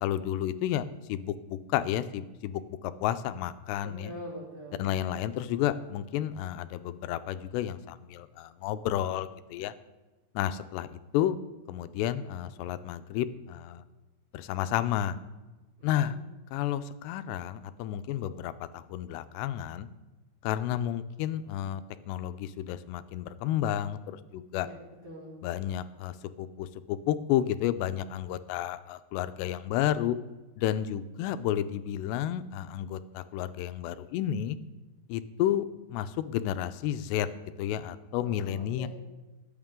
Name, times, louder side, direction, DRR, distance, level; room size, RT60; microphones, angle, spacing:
voice 1, 0.0-4.1 4.8-9.7 10.4-11.4 11.7-13.8 14.3-15.2 15.8-16.2 16.5-19.9 20.4-21.8 22.1-24.7 25.4-30.2 30.6-34.6 35.1-35.7 35.9-37.3 37.6-38.9, left 11 dB, 90° left, 12 dB, 2.8 m, -31 dB
voice 2, 3.8-4.9 15.9-16.2 24.6-24.7 25.0-25.3 38.2-38.9, equal, 40° right, -5 dB, 5.5 m, -43 dB
22.0 x 8.7 x 3.7 m, 1.1 s
omnidirectional pair, 4.8 m